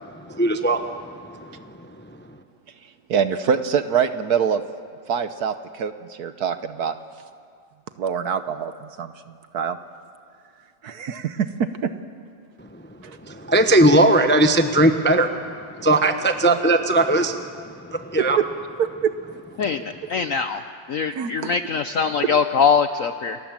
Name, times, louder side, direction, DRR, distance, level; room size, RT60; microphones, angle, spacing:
voice 1, 0.3-1.7 13.2-17.5 17.8-18.4, right 1 dB, 10° left, 7 dB, 0.6 m, -19 dB
voice 2, 3.1-4.6 5.1-6.9 8.0-9.1 9.5-9.8 10.8-11.9 13.0-13.2 16.4-16.6 18.4-18.5 18.8-19.1 21.1-21.3, right 7 dB, 60° right, 10 dB, 1.3 m, -24 dB
voice 3, 19.6-20.6 20.9-23.4, left 6 dB, 65° left, 9 dB, 0.8 m, -22 dB
29.0 x 19.0 x 7.5 m, 2.3 s
omnidirectional pair, 2.1 m